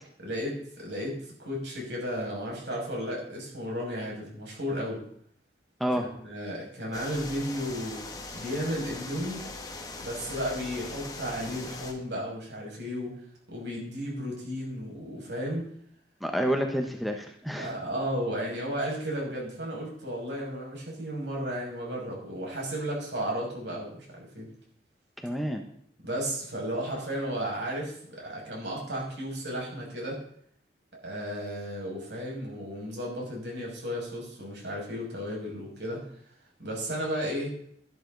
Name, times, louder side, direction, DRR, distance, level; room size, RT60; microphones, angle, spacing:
voice 1, 0.2-5.0 6.2-8.0 8.3-9.4 10.0-13.2 13.5-15.7 17.6-24.5 26.0-30.2 31.0-36.0 36.6-37.5, equal, 85° right, -2 dB, 6.3 m, -34 dB
sound 1, 6.9-11.9, left 3 dB, 20° left, 1.5 m, -40 dB
voice 2, 16.2-17.7 25.2-25.6, equal, ahead, 4 dB, 1.0 m, -29 dB
12.5 x 12.0 x 4.0 m, 0.64 s
head